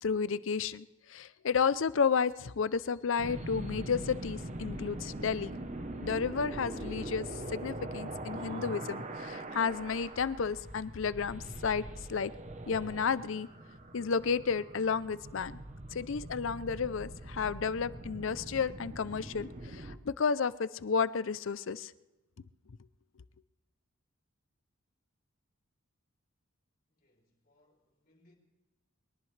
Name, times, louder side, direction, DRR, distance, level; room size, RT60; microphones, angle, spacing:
voice 1, 0.0-5.6 6.0-11.8 12.1-12.3 12.7-13.5 13.9-15.6 15.9-21.9, left 5 dB, 65° left, 0.5 m, -32 dB
sound 1, 3.2-20.0, right 1 dB, 35° right, 0.9 m, -42 dB
voice 2, 26.9-28.3, left 1 dB, 45° left, 3.4 m, -69 dB
22.5 x 18.5 x 3.3 m
head